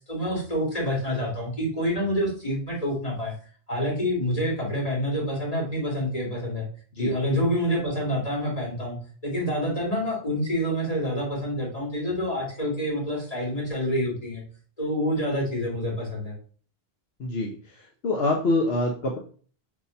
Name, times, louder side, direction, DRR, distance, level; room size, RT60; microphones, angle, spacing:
voice 1, 0.1-3.3 3.7-6.7 7.0-9.0 9.2-14.4 14.8-16.4, equal, 35° left, -3 dB, 3.2 m, -27 dB
voice 2, 17.2-17.5 18.0-19.2, left 2 dB, 75° left, 2 dB, 1.3 m, -25 dB
6.9 x 4.3 x 5.2 m, 0.43 s
omnidirectional pair, 1.0 m